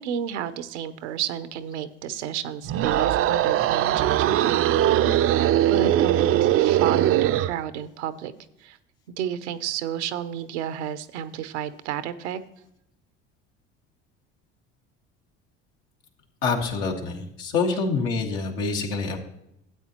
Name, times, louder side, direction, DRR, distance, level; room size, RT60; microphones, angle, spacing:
voice 1, 0.0-8.3 8.6-8.8 9.2-12.4 17.7-17.8, right 9 dB, 85° right, 14 dB, 0.7 m, -31 dB
sound 1, 2.6-7.6, right 12 dB, 40° right, 0.4 m, -21 dB
voice 2, 16.4-19.2, left 4 dB, 80° left, 1 dB, 1.9 m, -26 dB
12.5 x 8.4 x 2.9 m, 0.80 s
hypercardioid pair, 70°, 34 cm